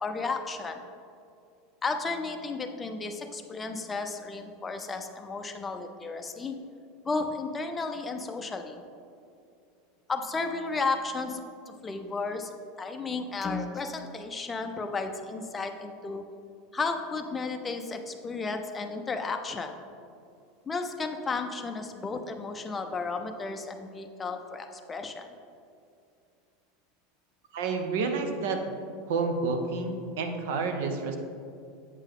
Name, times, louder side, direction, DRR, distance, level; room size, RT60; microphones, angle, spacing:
voice 1, 0.0-0.8 1.8-6.6 7.0-8.8 10.1-16.2 16.7-19.7 20.7-25.3, left 4 dB, 15° left, 5 dB, 0.4 m, -33 dB
voice 2, 27.5-28.6 29.1-31.2, right 4 dB, 70° right, 5 dB, 0.8 m, -29 dB
8.1 x 5.5 x 3.6 m, 2.5 s
supercardioid pair, 160°, 0 cm